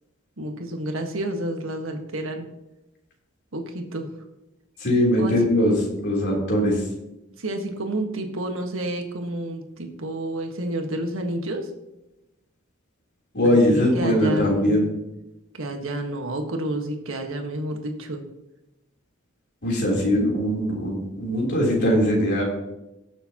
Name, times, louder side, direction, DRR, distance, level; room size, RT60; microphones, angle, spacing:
voice 1, 0.4-2.5 3.5-4.1 5.2-5.3 7.4-11.7 13.4-14.9 15.5-18.2, right 1 dB, 65° right, 4 dB, 1.6 m, -30 dB
voice 2, 4.8-6.8 13.3-14.9 19.6-22.4, equal, 55° left, -2 dB, 3.6 m, -21 dB
19.0 x 7.1 x 3.0 m, 0.93 s
head